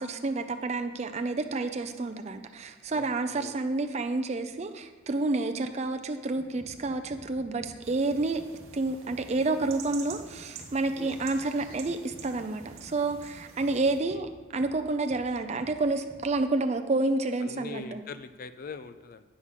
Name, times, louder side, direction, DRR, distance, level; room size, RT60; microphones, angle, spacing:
voice 1, 0.0-8.4 8.7-18.0, right 3 dB, 30° right, 7 dB, 0.4 m, -29 dB
voice 2, 2.9-3.6 10.9-11.2 13.7-14.2 17.4-19.2, left 4 dB, 45° left, 11 dB, 0.3 m, -43 dB
sound 1, 6.3-16.4, equal, 15° left, 1.5 m, -52 dB
sound 2, 7.8-14.0, right 7 dB, 90° right, 0.9 m, -48 dB
8.3 x 4.7 x 5.6 m, 1.3 s
head